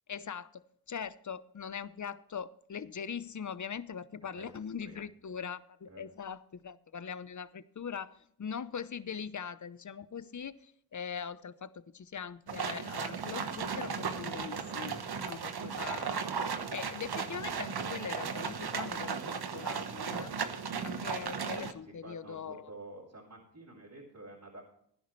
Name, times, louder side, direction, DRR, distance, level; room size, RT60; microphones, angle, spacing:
voice 1, 0.1-8.1 8.4-15.0 15.3-16.3 16.7-20.3 20.8-22.7, left 7 dB, 45° left, 0.8 m, -41 dB
voice 2, 4.3-5.0 5.9-6.0 21.8-24.6, right 1 dB, 45° right, 4.5 m, -50 dB
sound 1, 12.5-21.7, right 6 dB, 65° right, 1.2 m, -36 dB
16.0 x 10.5 x 3.2 m
cardioid pair, 45°, 40 cm